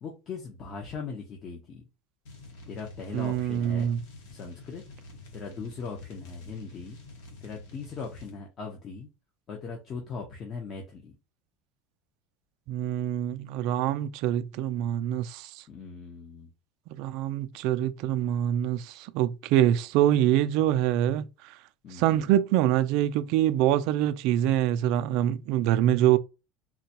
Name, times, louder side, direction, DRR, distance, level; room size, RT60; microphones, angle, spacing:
voice 1, 0.0-1.9 2.7-3.9 4.3-4.8 5.3-7.0 7.4-9.1 9.5-11.1 15.7-16.5 21.8-22.2, left 5 dB, 35° left, 0.8 m, -39 dB
sound 1, 2.2-8.4, left 2 dB, 75° left, 1.2 m, -48 dB
voice 2, 3.1-4.0 12.7-15.6 16.9-21.5 21.9-26.2, right 12 dB, 60° right, 0.3 m, -25 dB
3.8 x 2.2 x 2.8 m
supercardioid pair, 140°, 0 cm